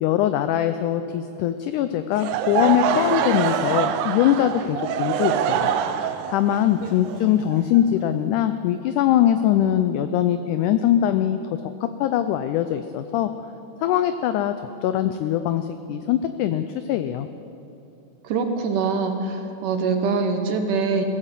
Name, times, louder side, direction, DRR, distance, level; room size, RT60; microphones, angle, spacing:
voice 1, 0.0-5.7 6.3-11.4 11.8-13.3 13.8-17.3, left 11 dB, 80° left, 10 dB, 1.9 m, -22 dB
Laughter / Crowd, 2.1-8.1, right 9 dB, 90° right, 2.4 m, -25 dB
voice 2, 18.2-21.0, right 4 dB, 75° right, 5 dB, 2.5 m, -24 dB
17.0 x 9.7 x 7.5 m, 2.9 s
omnidirectional pair, 3.9 m